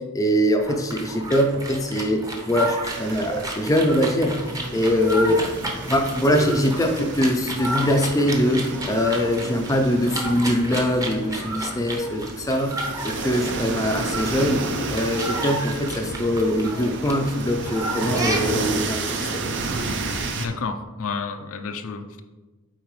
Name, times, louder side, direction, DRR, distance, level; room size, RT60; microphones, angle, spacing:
voice 1, 0.0-4.5 4.7-5.5 5.9-12.8 13.2-14.6 14.9-19.4, equal, 15° left, 3 dB, 0.5 m, -22 dB
sound 1, 0.6-18.8, right 1 dB, 15° right, 0.8 m, -32 dB
sound 2, 2.9-20.5, right 3 dB, 55° right, 0.7 m, -32 dB
voice 2, 20.4-22.2, left 4 dB, 65° left, 7 dB, 0.5 m, -30 dB
8.8 x 4.0 x 3.2 m, 1.2 s
head